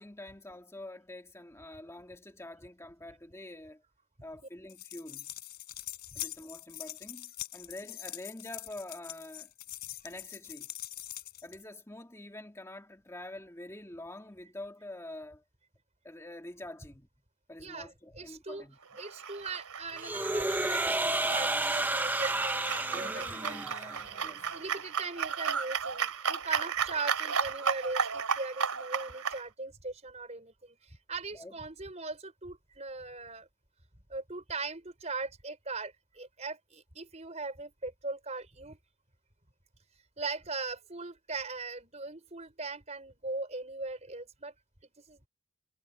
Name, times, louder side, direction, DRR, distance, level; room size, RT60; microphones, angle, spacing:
voice 1, 0.0-3.8 4.2-5.4 6.1-9.5 10.0-10.7 11.4-15.4 16.0-17.1 17.5-18.8 22.9-24.6 31.3-31.5, left 1 dB, 10° left, 2.1 m, -46 dB
sound 1, 4.7-11.6, left 13 dB, 45° left, 3.6 m, -43 dB
voice 2, 17.6-18.6 19.0-23.6 24.5-33.5 34.1-38.8 40.2-44.5 45.1-45.3, right 3 dB, 30° right, 4.8 m, -39 dB
sound 2, 18.9-29.4, right 6 dB, 85° right, 2.6 m, -34 dB
sound 3, 20.0-24.1, right 2 dB, 10° right, 0.5 m, -31 dB
head